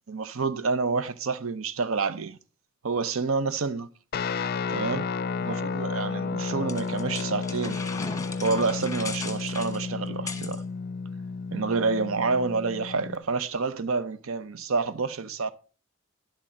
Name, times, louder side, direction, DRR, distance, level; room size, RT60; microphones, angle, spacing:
voice 1, 0.1-2.4 2.8-3.9 4.7-5.1 5.4-7.8 8.4-10.6 11.5-15.5, right 4 dB, 85° right, 0.7 m, -28 dB
Guitar, 4.1-13.2, left 5 dB, 50° left, 0.4 m, -32 dB
sound 1, 6.7-10.6, left 4 dB, 15° left, 1.1 m, -37 dB
11.0 x 8.5 x 3.8 m
head